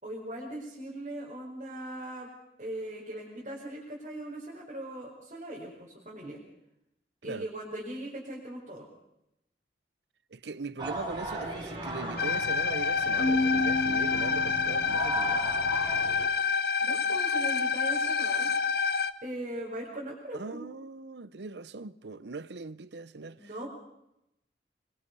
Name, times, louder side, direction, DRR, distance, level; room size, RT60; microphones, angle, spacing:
voice 1, 0.0-2.3 2.6-6.4 7.2-8.9 16.8-18.5 19.2-20.7 23.4-23.7, right 1 dB, 40° right, 5.2 m, -39 dB
voice 2, 10.3-15.5 20.3-23.5, right 3 dB, 75° right, 0.7 m, -40 dB
sound 1, 10.8-16.3, right 2 dB, 25° right, 5.1 m, -37 dB
sound 2, 12.2-19.1, left 5 dB, 55° left, 0.8 m, -28 dB
Keyboard (musical), 13.2-15.0, left 2 dB, 30° left, 0.7 m, -30 dB
25.0 x 23.0 x 5.5 m
head